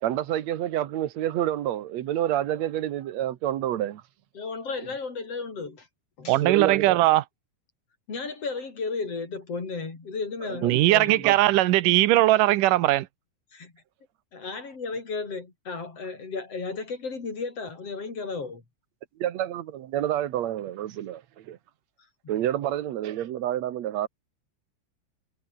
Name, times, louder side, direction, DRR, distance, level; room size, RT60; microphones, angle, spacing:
voice 1, 0.0-4.0 6.4-7.0 10.5-10.8 11.2-11.3 19.2-21.6 22.3-24.1, right 12 dB, 65° right, 2.3 m, -28 dB
voice 2, 4.3-5.9 6.2-6.4 8.1-11.3 13.5-13.7 14.3-18.6, left 4 dB, 50° left, 5.8 m, -34 dB
voice 3, 6.3-7.2 10.6-13.1, right 16 dB, 85° right, 2.5 m, -20 dB
omnidirectional pair, 3.7 m